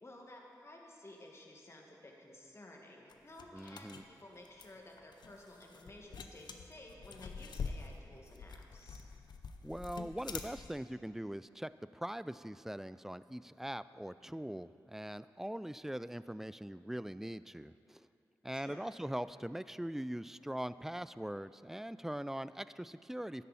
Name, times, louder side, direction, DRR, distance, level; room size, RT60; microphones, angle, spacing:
voice 1, 0.0-9.0 18.5-18.9, left 1 dB, 35° left, 0 dB, 1.9 m, -54 dB
sound 1, 3.1-10.8, left 5 dB, 80° left, 0.6 m, -46 dB
voice 2, 3.5-4.0 9.6-18.0 18.4-23.4, right 1 dB, 5° right, 15 dB, 0.3 m, -42 dB
13.0 x 10.0 x 4.2 m, 2.7 s
cardioid pair, 55°, 7 cm